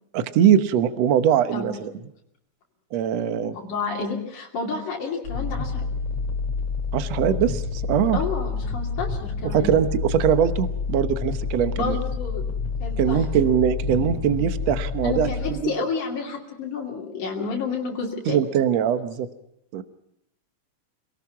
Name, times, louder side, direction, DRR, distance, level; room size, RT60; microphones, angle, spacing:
voice 1, 0.1-1.9 2.9-3.6 6.9-8.2 9.4-12.0 13.0-15.3 15.6-15.7 18.3-19.3 19.7-19.8, right 9 dB, 65° right, 10 dB, 2.1 m, -22 dB
voice 2, 3.5-5.8 8.1-9.7 11.8-12.4 12.8-13.2 15.0-18.4, left 4 dB, 85° left, -2 dB, 4.2 m, -30 dB
sound 1, 5.2-15.5, left 5 dB, 65° left, 3.5 m, -28 dB
28.0 x 18.0 x 5.8 m, 0.76 s
omnidirectional pair, 3.4 m